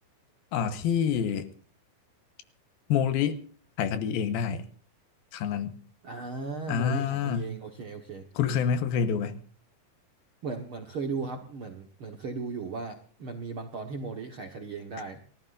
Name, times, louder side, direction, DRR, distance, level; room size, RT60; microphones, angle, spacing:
voice 1, 0.5-1.5 2.9-3.4 3.8-4.6 5.3-5.8 6.7-7.5 8.4-9.4, left 7 dB, 75° left, 2.9 m, -27 dB
voice 2, 6.0-8.2 10.4-15.2, right 4 dB, 55° right, 1.5 m, -36 dB
29.5 x 14.0 x 2.6 m
omnidirectional pair, 4.5 m